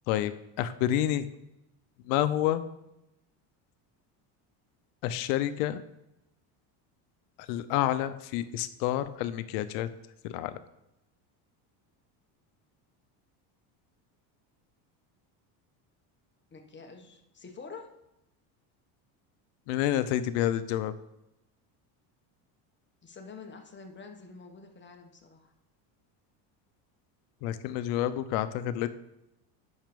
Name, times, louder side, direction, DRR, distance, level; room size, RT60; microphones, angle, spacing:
voice 1, 0.6-1.2 2.1-2.6 5.0-5.8 7.5-9.9 10.2-10.6 19.7-20.9 27.4-28.9, left 12 dB, 85° left, 13 dB, 0.8 m, -28 dB
voice 2, 16.5-17.9 23.0-25.5, left 4 dB, 25° left, 4 dB, 1.4 m, -47 dB
9.1 x 6.5 x 5.2 m, 0.89 s
supercardioid pair, 115°, 45 cm